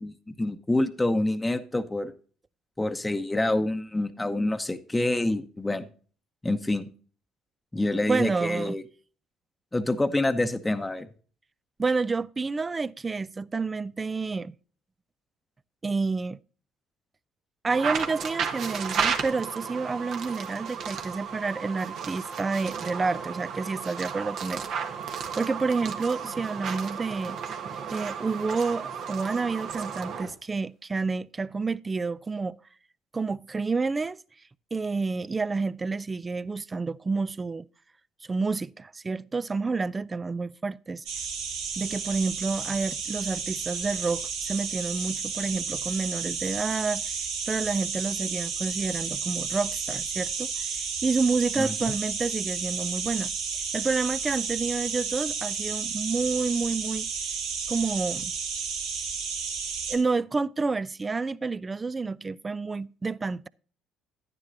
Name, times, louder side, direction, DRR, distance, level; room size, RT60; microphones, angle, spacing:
voice 1, 0.0-2.1 2.8-5.9 6.4-6.8 7.7-8.8 9.7-11.1 51.6-51.7, left 2 dB, 15° left, 0.9 m, -27 dB
voice 2, 8.1-8.7 11.8-14.5 15.8-16.4 17.6-24.7 25.1-27.4 27.9-32.6 33.1-34.2 34.7-37.7 38.3-41.0 41.8-47.2 47.5-57.1 57.7-58.3 59.9-63.5, right 4 dB, 25° right, 0.4 m, -29 dB
sound 1, 17.7-30.3, right 6 dB, 60° right, 1.4 m, -33 dB
sound 2, 41.1-60.0, right 5 dB, 80° right, 2.0 m, -32 dB
10.0 x 9.8 x 2.6 m
hypercardioid pair, 65°, 0 cm